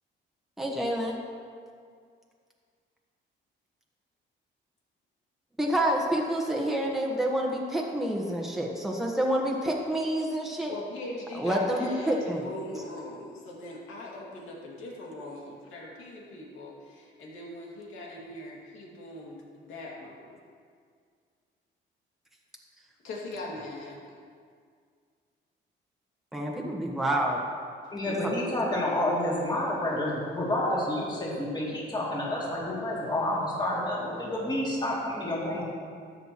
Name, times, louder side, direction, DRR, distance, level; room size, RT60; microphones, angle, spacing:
voice 1, 0.6-1.2 5.6-10.7 11.3-12.5 26.3-27.4 28.0-28.2, right 1 dB, ahead, -2 dB, 1.3 m, -28 dB
voice 2, 10.7-20.4 23.0-23.9, left 1 dB, 85° left, -3 dB, 2.3 m, -41 dB
voice 3, 27.9-35.6, left 1 dB, 20° left, -6 dB, 2.6 m, -29 dB
13.0 x 8.0 x 3.1 m, 2.1 s
cardioid pair, 90°, 20 cm